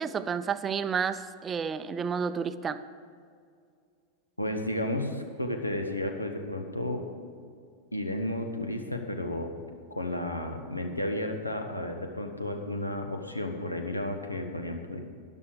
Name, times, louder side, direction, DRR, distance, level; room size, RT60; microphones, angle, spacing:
voice 1, 0.0-2.8, right 6 dB, 20° right, 13 dB, 0.5 m, -30 dB
voice 2, 4.4-7.0 7.9-9.5 9.9-15.0, left 1 dB, 85° left, 5 dB, 1.1 m, -32 dB
12.5 x 11.0 x 4.9 m, 2.2 s
figure-of-eight pair, 90°, 0 cm